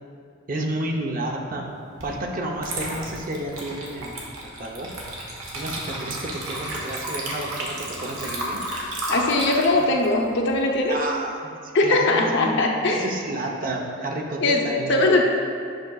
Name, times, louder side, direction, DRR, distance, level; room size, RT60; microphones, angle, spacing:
voice 1, 0.5-1.8 2.0-4.9 5.5-8.7 9.8-9.9 10.8-15.2, right 1 dB, 40° right, 1 dB, 0.6 m, -31 dB
Water / Liquid, 2.0-2.2 2.6-11.1, right 1 dB, 80° right, 1.3 m, -32 dB
voice 2, 9.1-11.0 11.7-13.1 14.4-15.2, left 2 dB, 55° left, 1 dB, 0.7 m, -20 dB
9.2 x 5.8 x 2.3 m, 2.3 s
head